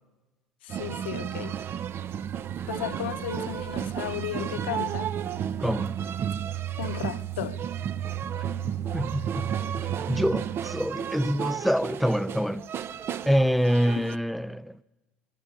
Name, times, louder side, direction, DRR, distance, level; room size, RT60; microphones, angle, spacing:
voice 1, 0.6-1.6 2.7-5.2 6.8-7.6 14.0-14.1, left 13 dB, 80° left, 0.7 m, -35 dB
sound 1, 0.7-14.2, right 9 dB, 45° right, 0.8 m, -32 dB
voice 2, 5.6-5.9 8.9-9.5 10.1-12.7 13.3-14.8, equal, ahead, 0.8 m, -26 dB
26.0 x 25.0 x 6.9 m
hypercardioid pair, 65°, 6 cm